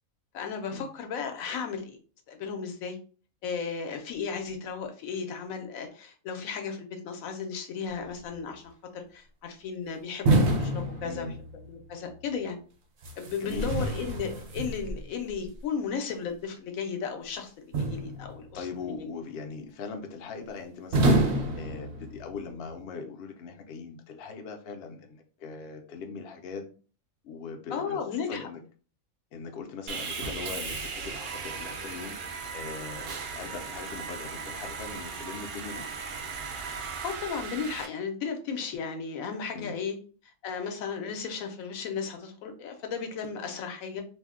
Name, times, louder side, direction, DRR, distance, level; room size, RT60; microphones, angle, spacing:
voice 1, 0.3-2.0 2.3-3.0 3.4-11.3 11.6-12.6 13.2-18.7 19.0-19.1 27.7-28.5 37.0-40.0 40.4-44.0, left 6 dB, 80° left, 4 dB, 1.0 m, -35 dB
sound 1, 10.3-11.7 13.0-15.1 17.7-18.6 20.9-22.4, right 2 dB, 60° right, 0.9 m, -27 dB
voice 2, 11.0-11.4 13.4-13.9 18.5-21.2 21.6-26.6 27.2-28.6 29.3-32.2 32.5-35.9 39.5-39.8, left 5 dB, 60° left, 4 dB, 0.7 m, -40 dB
Sawing, 29.9-37.9, right 5 dB, 85° right, 0.4 m, -37 dB
2.6 x 2.1 x 3.5 m, 0.40 s
omnidirectional pair, 1.4 m